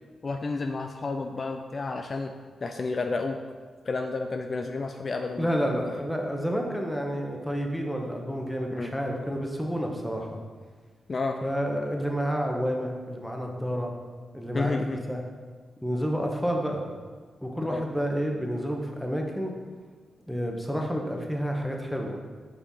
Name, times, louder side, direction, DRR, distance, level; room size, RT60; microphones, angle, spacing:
voice 1, 0.2-2.3 2.6-3.4 3.8-5.5 5.8-5.9 8.7-8.9 11.1-11.4 14.5-15.0 17.6-17.8, left 3 dB, 40° left, 5 dB, 0.4 m, -31 dB
voice 2, 5.4-10.4 11.4-13.9 14.3-15.2 15.8-16.8 17.4-19.5 20.3-22.2, equal, ahead, 1 dB, 1.0 m, -29 dB
6.1 x 5.5 x 4.1 m, 1.5 s
cardioid pair, 95°, 0 cm